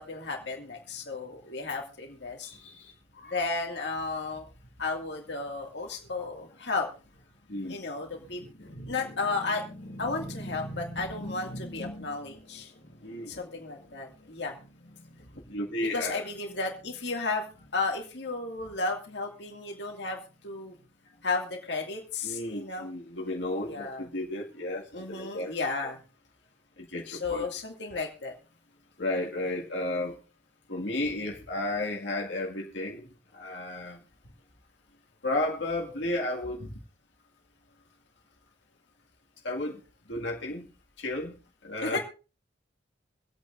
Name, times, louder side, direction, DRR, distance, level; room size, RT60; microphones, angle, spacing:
voice 1, 0.0-2.5 3.3-4.5 4.8-6.9 7.7-8.4 8.9-9.6 10.0-12.7 13.3-14.6 15.9-17.5 17.7-20.2 20.4-20.7 21.2-22.9 23.7-24.1 24.9-26.0 27.1-28.3 41.8-42.0, left 3 dB, 70° left, 1 dB, 2.2 m, -33 dB
voice 2, 2.4-3.3 7.5-7.8 8.3-9.4 9.8-12.2 12.8-13.8 14.0-14.4 15.0-15.1 15.5-16.2 22.2-25.5 26.8-27.5 29.0-30.2 30.7-33.1 33.3-34.0 35.2-36.7 39.4-39.8 40.1-40.7 41.0-41.4 41.6-42.0, left 1 dB, 90° left, -1 dB, 2.1 m, -34 dB
25.0 x 8.6 x 2.6 m, 0.34 s
head